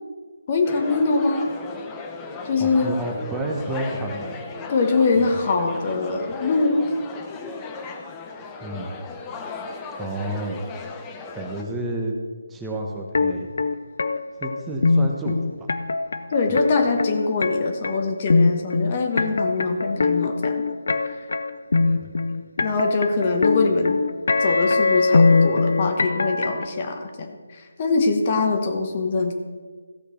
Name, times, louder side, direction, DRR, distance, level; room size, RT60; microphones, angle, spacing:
voice 1, 0.5-1.5 2.4-2.9 4.7-7.0 16.3-20.6 21.1-21.2 22.6-24.0 24.4-29.3, left 3 dB, 35° left, 4 dB, 1.2 m, -23 dB
sound 1, 0.6-11.6, left 4 dB, 15° left, 0.8 m, -36 dB
voice 2, 2.6-4.3 5.2-5.3 8.6-9.0 9.6-9.7 10.0-10.6 11.3-12.2 12.5-13.7 14.4-15.7 16.5-16.6 21.8-22.0, right 1 dB, 10° right, -1 dB, 1.0 m, -30 dB
sound 2, 13.2-26.7, left 3 dB, 55° left, 0.6 m, -21 dB
15.5 x 6.6 x 4.4 m, 1.5 s
figure-of-eight pair, 150°, 0 cm